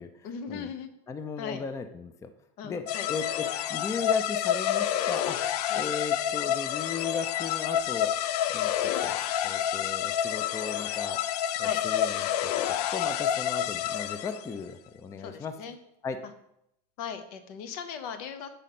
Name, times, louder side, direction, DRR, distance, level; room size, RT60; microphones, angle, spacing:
voice 1, 0.2-0.9 1.4-1.6 2.6-3.1 5.7-5.9 11.6-11.8 15.2-15.8 17.0-18.5, left 7 dB, 70° left, 10 dB, 0.8 m, -38 dB
voice 2, 1.1-2.3 2.6-3.4 3.7-5.4 5.7-8.1 8.5-8.7 9.0-9.2 9.4-11.2 11.6-12.5 12.9-15.5 16.0-16.2, left 5 dB, 15° left, 9 dB, 0.4 m, -36 dB
sound 1, 2.9-14.5, left 10 dB, 90° left, 0.4 m, -28 dB
5.1 x 4.2 x 5.8 m, 0.79 s
supercardioid pair, 135°, 20 cm